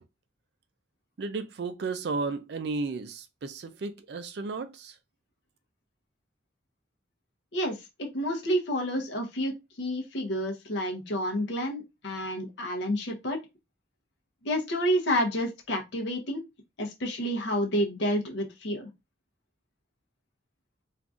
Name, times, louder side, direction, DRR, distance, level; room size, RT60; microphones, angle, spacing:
voice 1, 1.2-4.9, right 3 dB, 60° right, 0.4 m, -33 dB
voice 2, 7.5-13.4 14.4-16.4 16.8-18.9, equal, 70° left, 0.7 m, -29 dB
3.7 x 2.5 x 2.3 m
head